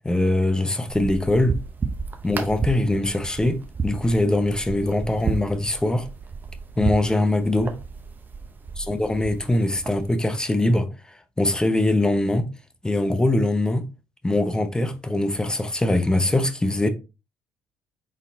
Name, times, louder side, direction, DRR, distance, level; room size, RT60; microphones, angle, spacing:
voice 1, 0.0-1.6 2.2-6.1 6.8-7.8 8.8-10.9 11.4-12.5 12.8-13.8 14.2-16.9, left 1 dB, 15° left, 0.9 m, -22 dB
sound 1, 0.9-10.1, right 5 dB, 35° right, 0.8 m, -32 dB
4.0 x 3.7 x 2.7 m
hypercardioid pair, 55°, 6 cm